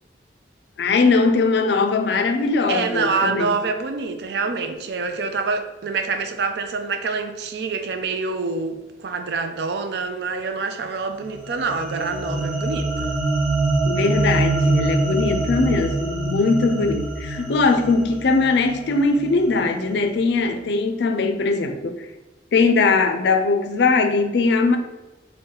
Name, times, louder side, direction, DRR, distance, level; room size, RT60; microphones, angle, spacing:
voice 1, 0.8-3.5 13.8-22.1 22.5-24.8, left 3 dB, 70° left, 7 dB, 0.4 m, -20 dB
voice 2, 2.7-13.1, right 4 dB, 65° right, 7 dB, 0.4 m, -26 dB
sound 1, 11.2-19.7, right 2 dB, 5° right, 0.6 m, -25 dB
3.7 x 2.2 x 3.9 m, 1.1 s
head